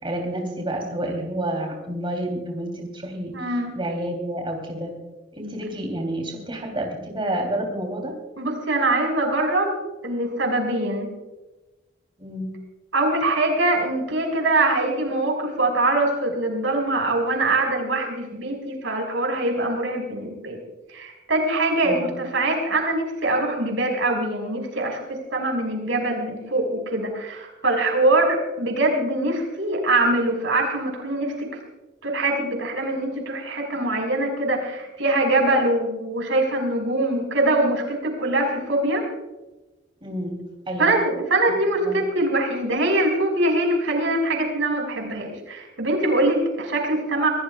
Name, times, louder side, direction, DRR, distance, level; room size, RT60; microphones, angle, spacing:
voice 1, 0.0-5.0 5.4-8.2 12.2-12.5 21.8-22.1 40.0-41.0 41.8-42.0, right 1 dB, 30° right, 1 dB, 3.3 m, -29 dB
voice 2, 3.3-3.7 8.4-9.8 10.0-11.1 12.9-20.6 20.9-31.5 32.0-39.0 40.8-47.3, right 2 dB, 85° right, 1 dB, 5.7 m, -23 dB
26.5 x 17.0 x 2.4 m, 1.1 s
head